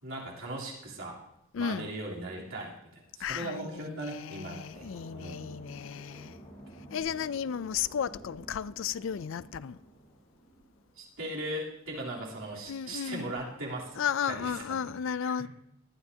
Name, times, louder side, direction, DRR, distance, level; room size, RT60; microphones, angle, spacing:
voice 1, 0.0-1.2 1.6-4.9 5.1-5.6 11.0-15.5, right 1 dB, 75° right, 3.4 m, -39 dB
voice 2, 1.5-1.9 3.2-6.4 6.9-9.8 12.7-13.3 14.0-15.5, left 7 dB, 65° left, 0.4 m, -34 dB
sound 1, 4.7-11.1, right 1 dB, 40° left, 4.0 m, -51 dB
19.5 x 12.0 x 2.8 m
head